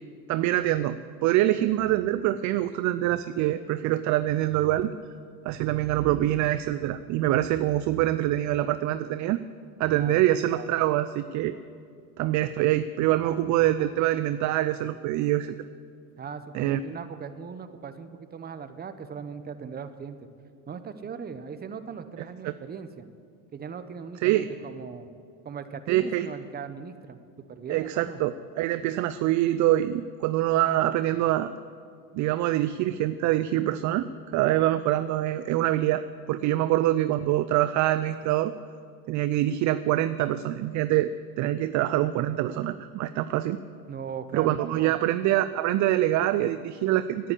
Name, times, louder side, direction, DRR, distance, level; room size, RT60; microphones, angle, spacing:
voice 1, 0.3-4.9 5.4-9.4 9.8-11.5 12.2-15.5 16.5-16.8 22.4-22.5 24.2-24.5 25.9-26.3 27.7-31.5 32.1-36.0 36.3-38.5 39.1-43.6 44.3-47.3, right 14 dB, 45° right, 13 dB, 0.5 m, -25 dB
voice 2, 9.9-10.3 13.2-13.4 16.2-20.3 20.7-23.0 23.5-25.1 25.4-27.2 27.5-28.2 36.6-36.7 43.9-44.9, right 6 dB, 20° right, 10 dB, 0.8 m, -39 dB
10.0 x 9.8 x 8.3 m, 2.2 s
supercardioid pair, 105°, 44 cm